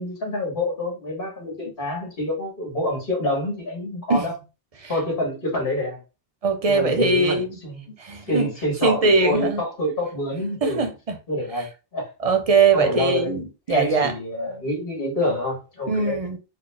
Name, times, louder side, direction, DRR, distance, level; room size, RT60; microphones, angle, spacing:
voice 1, 0.0-4.3 4.9-6.0 6.7-7.9 8.3-10.9 11.3-12.1 12.7-13.3 13.7-16.2, left 1 dB, 60° left, 1.8 m, -27 dB
voice 2, 6.4-7.6 8.0-8.5 8.8-9.6 10.6-11.1 12.2-14.1 15.9-16.4, right 4 dB, 40° right, 0.6 m, -21 dB
4.2 x 2.1 x 3.3 m
omnidirectional pair, 1.1 m